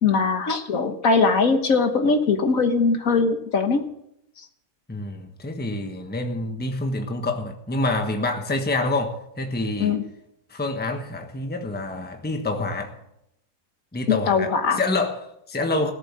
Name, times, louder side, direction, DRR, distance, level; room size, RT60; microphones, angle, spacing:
voice 1, 0.0-3.8 9.8-10.0 14.1-14.8, left 4 dB, 60° left, 1.6 m, -21 dB
voice 2, 4.9-10.0 10.5-13.0 13.9-15.9, left 2 dB, 5° left, 1.1 m, -27 dB
17.5 x 7.6 x 7.5 m
omnidirectional pair, 1.7 m